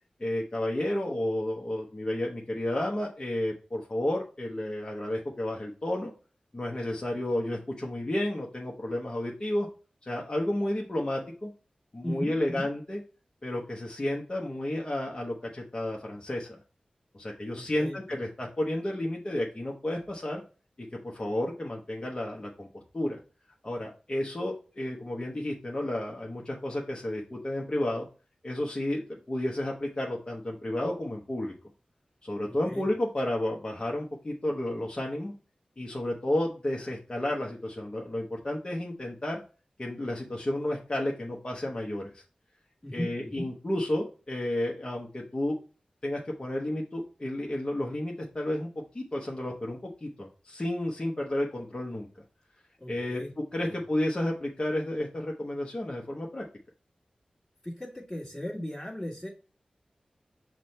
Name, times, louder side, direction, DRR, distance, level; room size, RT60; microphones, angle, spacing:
voice 1, 0.2-6.1 6.5-9.7 10.1-11.5 11.9-13.0 13.4-16.6 17.1-20.4 20.8-22.7 22.9-23.2 23.6-28.1 28.4-31.5 32.2-35.3 35.8-39.4 39.8-42.2 42.9-45.6 46.0-48.7 48.9-52.1 52.9-53.2 53.5-56.4, left 1 dB, 35° left, -2 dB, 0.8 m, -31 dB
voice 2, 12.0-12.7 17.5-18.2 32.5-32.9 42.8-43.5 52.8-53.3 53.6-53.8 57.6-59.3, equal, 15° left, -8 dB, 1.5 m, -37 dB
6.1 x 2.2 x 4.0 m, 0.36 s
wide cardioid pair, 70°, 2 cm